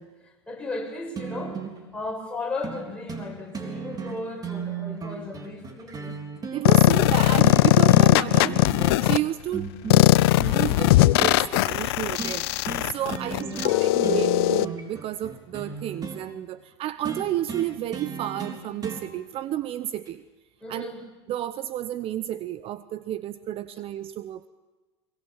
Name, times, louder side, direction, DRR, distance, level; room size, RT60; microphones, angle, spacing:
voice 1, 0.0-1.6 1.9-6.2 13.2-14.0 20.6-21.0, left 2 dB, 10° left, 0 dB, 6.4 m, -36 dB
sound 1, 1.2-1.8 2.6-2.8 3.1-3.3 3.5-6.6 7.4-8.1 8.3-9.2 9.5-11.4 12.2-12.4 12.7-12.9 13.1-13.8 14.0-16.2 17.0-19.0 20.1-20.2, right 6 dB, 30° right, 3.7 m, -35 dB
voice 2, 6.5-8.6 9.0-9.7 10.4-12.5 12.9-20.2 20.7-20.9 21.3-24.5, right 12 dB, 45° right, 14 dB, 0.8 m, -31 dB
sound 2, 6.7-9.2 9.9-14.7, left 18 dB, 70° left, 0.6 m, -19 dB
23.0 x 23.0 x 7.3 m, 1.2 s
hypercardioid pair, 85°, 14 cm